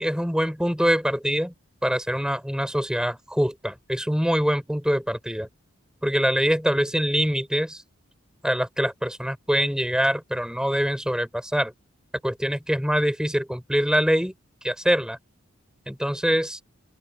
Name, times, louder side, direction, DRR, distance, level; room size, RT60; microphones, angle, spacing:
voice 1, 0.0-1.5 1.8-5.5 6.0-7.8 8.4-11.7 12.2-14.3 14.6-15.2 15.9-16.6, equal, 5° right, 5.6 m, -24 dB
open air
head